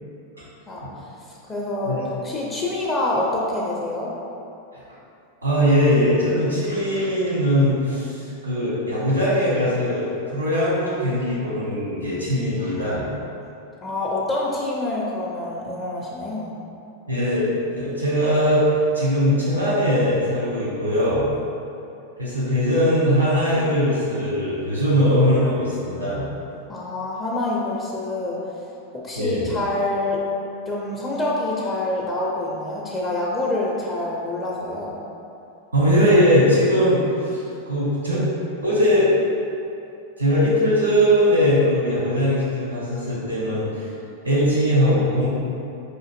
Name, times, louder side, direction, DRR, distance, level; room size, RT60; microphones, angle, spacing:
voice 1, 1.3-1.9 2.2-4.1 13.8-16.5 26.7-28.4 28.9-30.2 30.7-35.0, left 2 dB, 20° left, -4 dB, 0.4 m, -26 dB
voice 2, 5.4-13.1 17.1-17.5 17.8-21.3 22.2-26.3 29.1-29.4 35.7-38.2 38.6-39.1 40.2-43.8 44.2-45.3, equal, 80° right, -8 dB, 1.0 m, -20 dB
4.9 x 2.5 x 2.4 m, 2.7 s
figure-of-eight pair, 90°, 0 cm